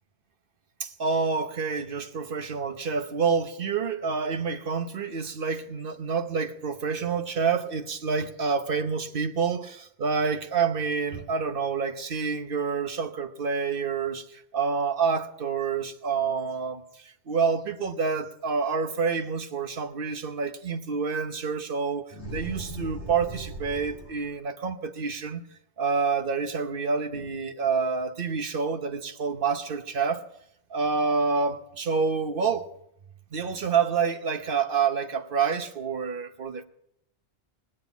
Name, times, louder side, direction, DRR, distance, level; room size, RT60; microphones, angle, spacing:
voice 1, 0.8-25.4 25.8-30.2 30.7-32.7 33.3-36.6, right 5 dB, 55° right, 1.1 m, -28 dB
sound 1, 22.1-24.3, right 1 dB, 85° right, 4.3 m, -38 dB
19.5 x 8.2 x 8.1 m
omnidirectional pair, 1.1 m